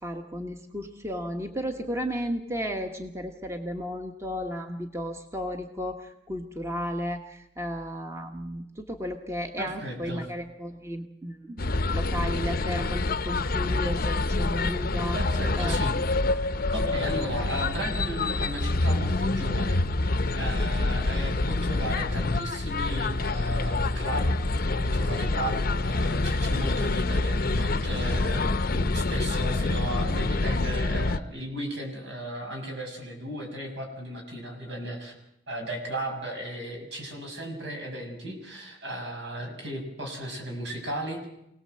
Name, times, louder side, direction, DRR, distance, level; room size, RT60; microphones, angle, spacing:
voice 1, 0.0-15.2 15.6-15.9 16.8-16.9 17.2-17.3, equal, 15° right, 5 dB, 1.2 m, -34 dB
voice 2, 9.6-10.2 15.1-16.4 16.7-24.3 24.7-35.1 35.5-41.3, right 1 dB, 70° right, 2 dB, 6.3 m, -35 dB
sound 1, 11.6-31.2, left 2 dB, 50° left, 0.8 m, -26 dB
25.0 x 18.0 x 7.7 m, 0.81 s
head